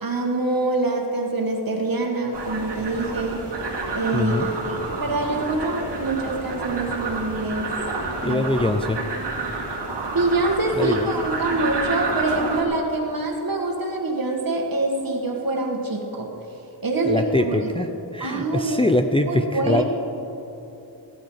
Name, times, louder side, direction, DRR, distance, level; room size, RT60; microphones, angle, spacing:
voice 1, 0.0-3.4 3.9-7.7 8.2-8.6 10.1-16.3 16.8-17.7 18.2-18.8 19.3-19.8, right 2 dB, 50° right, 1 dB, 2.0 m, -25 dB
sound 1, 2.3-12.6, right 3 dB, 65° right, 2.2 m, -29 dB
voice 2, 4.1-4.5 8.2-9.0 10.8-11.1 17.1-19.8, left 1 dB, 15° left, 5 dB, 0.5 m, -23 dB
15.0 x 12.0 x 5.7 m, 3.0 s
wide cardioid pair, 120°, 44 cm